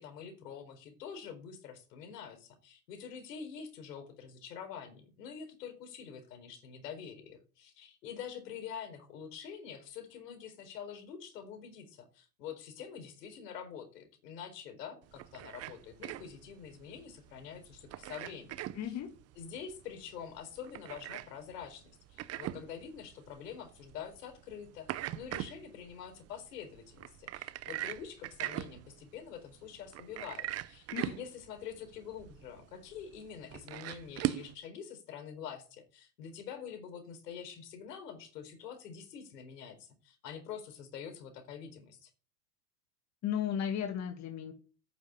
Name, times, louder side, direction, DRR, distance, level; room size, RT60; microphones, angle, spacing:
voice 1, 0.0-19.0 19.4-42.1, left 7 dB, 70° left, 7 dB, 4.4 m, -46 dB
sound 1, 15.0-34.5, right 14 dB, 30° right, 0.8 m, -42 dB
voice 2, 18.7-19.1 30.9-31.1 43.2-44.5, left 9 dB, 35° left, 6 dB, 2.0 m, -35 dB
9.5 x 7.9 x 8.8 m, 0.38 s
hypercardioid pair, 100°, 49 cm